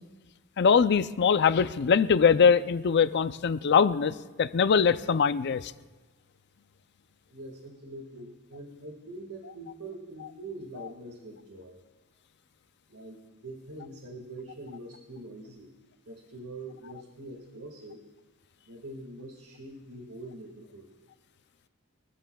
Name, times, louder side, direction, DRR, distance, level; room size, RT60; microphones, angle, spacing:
voice 1, 0.6-4.1 4.4-5.7, left 6 dB, 50° left, 14 dB, 0.4 m, -22 dB
voice 2, 7.3-11.8 12.9-15.7 16.1-18.0 18.7-20.9, right 2 dB, 80° right, 0 dB, 1.9 m, -44 dB
23.0 x 14.5 x 2.3 m, 1.2 s
head